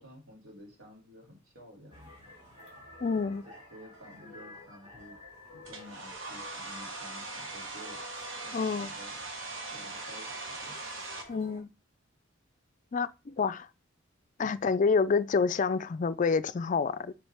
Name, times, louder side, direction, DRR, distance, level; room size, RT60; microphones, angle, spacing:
voice 1, 0.0-2.1 3.2-5.2 5.5-8.0 8.4-9.2 9.7-10.8 14.4-14.7, equal, 90° right, 2.7 m, -52 dB
sound 1, 1.9-11.6, left 2 dB, 25° right, 2.9 m, -51 dB
voice 2, 3.0-3.4 8.5-8.9 11.3-11.7 12.9-13.7 14.4-17.1, left 5 dB, 40° left, 0.4 m, -28 dB
Domestic sounds home sounds, 5.6-11.2, right 3 dB, 70° right, 1.4 m, -40 dB
7.1 x 5.5 x 3.4 m
head